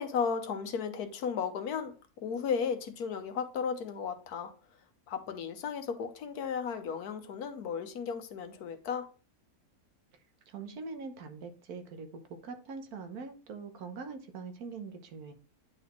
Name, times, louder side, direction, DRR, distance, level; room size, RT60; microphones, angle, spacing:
voice 1, 0.0-4.5 5.1-9.1, left 6 dB, 85° left, 1.4 m, -34 dB
voice 2, 10.5-15.3, right 4 dB, 80° right, 1.5 m, -43 dB
9.5 x 4.1 x 3.0 m
omnidirectional pair, 1.6 m